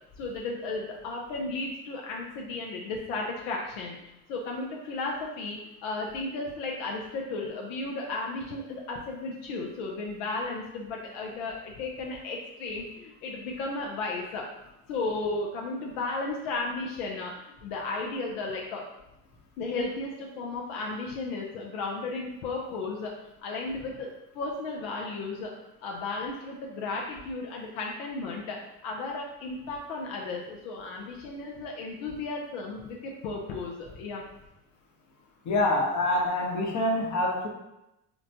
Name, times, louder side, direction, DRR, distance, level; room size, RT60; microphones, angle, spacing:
voice 1, 0.2-4.0 4.3-14.5 14.9-17.3 17.6-18.8 19.6-23.1 23.4-24.1 24.3-25.5 25.8-28.6 28.8-34.2, left 3 dB, 85° left, -1 dB, 0.6 m, -34 dB
voice 2, 35.4-37.5, left 1 dB, 50° left, 0 dB, 0.9 m, -26 dB
3.8 x 2.2 x 2.7 m, 0.92 s
supercardioid pair, 85°, 37 cm